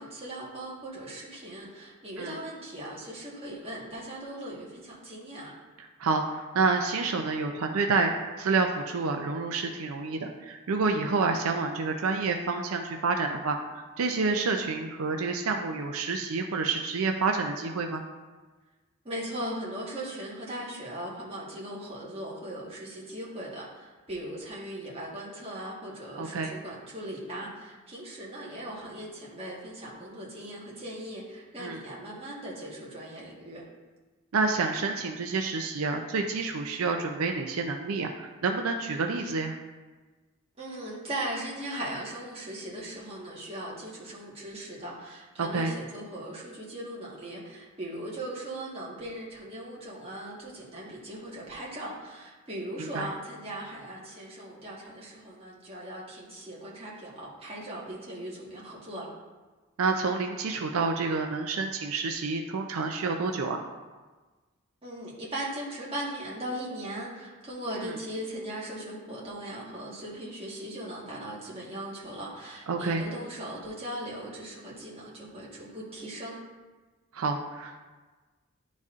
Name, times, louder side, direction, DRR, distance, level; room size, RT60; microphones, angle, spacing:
voice 1, 0.0-5.5 19.0-33.6 40.6-59.1 64.8-76.4, right 1 dB, 25° right, -6 dB, 1.3 m, -39 dB
voice 2, 5.8-18.0 26.2-26.5 31.6-31.8 34.3-39.6 45.4-45.7 52.8-53.1 59.8-63.6 67.8-67.9 72.7-73.0 77.1-77.8, right 4 dB, 80° right, 4 dB, 0.5 m, -29 dB
10.5 x 4.0 x 2.5 m, 1.3 s
head